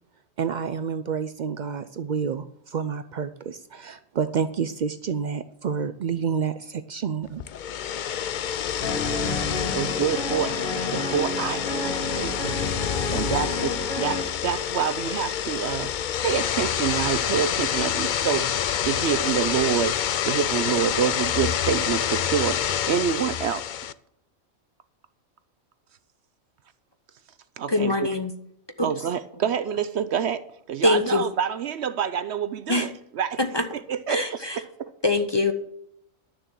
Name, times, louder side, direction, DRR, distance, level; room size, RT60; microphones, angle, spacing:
voice 1, 0.4-7.4, right 6 dB, 80° right, 0.4 m, -29 dB
sound 1, 7.4-23.9, left 9 dB, 75° left, 0.4 m, -27 dB
sound 2, 8.8-14.2, left 2 dB, 40° left, 1.8 m, -31 dB
voice 2, 9.5-12.6 13.1-18.5 18.8-20.0 20.3-23.6 27.6-28.1 28.8-33.4 33.7-34.9, right 8 dB, 65° right, 0.8 m, -27 dB
voice 3, 27.7-28.3 28.8-28.9 30.8-31.2 32.7-32.9 33.4-33.6 34.1-34.6 35.0-35.5, left 2 dB, 25° left, 0.8 m, -23 dB
11.5 x 6.9 x 7.4 m
omnidirectional pair, 1.4 m